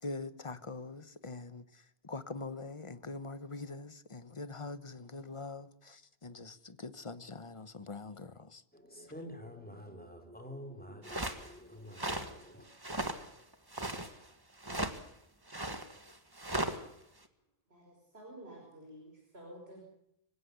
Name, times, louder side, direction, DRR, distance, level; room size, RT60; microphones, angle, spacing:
voice 1, 0.0-8.6, left 3 dB, 30° left, 1.2 m, -44 dB
voice 2, 8.7-12.7, equal, 10° left, 4.2 m, -48 dB
sound 1, 11.0-11.5 12.0-12.3 12.7-13.3 13.5-14.1 14.6-15.0 15.5-16.8, right 1 dB, 20° right, 1.8 m, -36 dB
voice 3, 17.7-19.8, right 1 dB, 90° right, 5.6 m, -51 dB
25.5 x 16.5 x 8.2 m
omnidirectional pair, 1.0 m